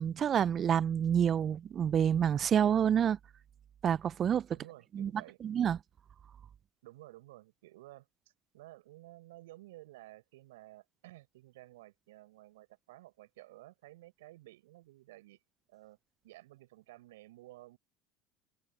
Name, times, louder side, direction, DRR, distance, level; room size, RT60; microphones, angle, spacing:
voice 1, 0.0-3.2 3.8-4.5 4.9-5.1 5.4-5.8, right 8 dB, 40° right, 0.6 m, -28 dB
voice 2, 4.5-5.4 6.8-15.4 15.7-16.0 16.2-17.8, right 17 dB, 75° right, 5.0 m, -54 dB
hypercardioid pair, 75°, 0 cm